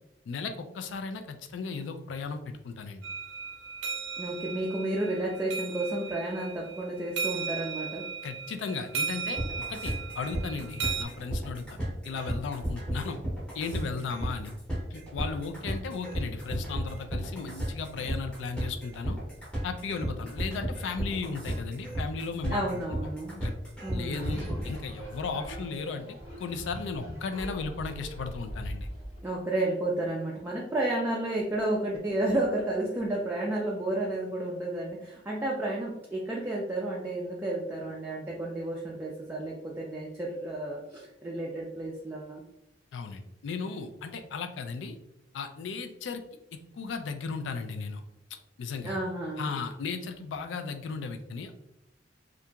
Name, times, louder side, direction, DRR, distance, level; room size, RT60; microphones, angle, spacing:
voice 1, 0.3-3.0 8.2-9.4 9.7-11.7 12.0-13.2 13.5-14.5 14.9-19.2 19.6-22.6 23.4-23.5 23.9-26.0 26.4-28.9 42.9-45.0 45.3-46.2 46.8-48.0 48.6-49.0 49.4-51.5, left 4 dB, 85° left, 7 dB, 0.3 m, -35 dB
sound 1, 3.0-11.0, right 6 dB, 85° right, 0.5 m, -36 dB
voice 2, 4.2-8.0 22.5-23.4 23.8-24.4 29.2-42.4 48.8-49.5, right 1 dB, 10° right, -4 dB, 0.3 m, -31 dB
sound 2, 9.4-24.8, right 1 dB, 5° left, 0.7 m, -33 dB
sound 3, 24.1-29.2, equal, 35° left, 0.9 m, -41 dB
2.8 x 2.4 x 2.2 m, 0.85 s
head